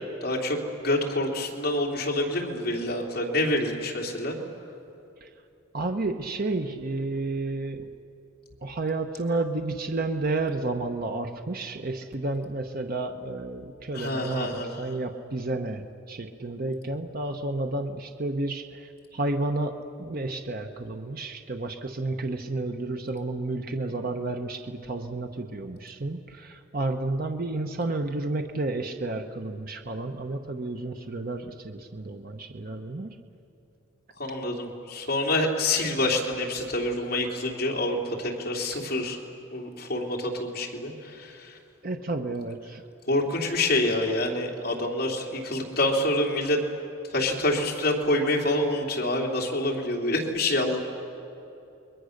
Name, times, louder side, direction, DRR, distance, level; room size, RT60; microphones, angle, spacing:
voice 1, 0.2-0.6 0.8-4.4 13.9-14.9 34.2-39.2 39.5-41.6 43.1-46.6 47.1-50.8, left 1 dB, 50° left, -1 dB, 3.1 m, -27 dB
voice 2, 5.7-7.9 8.6-19.7 20.0-33.1 41.8-42.8, right 2 dB, 45° right, 5 dB, 0.9 m, -31 dB
29.5 x 21.5 x 6.6 m, 2.8 s
head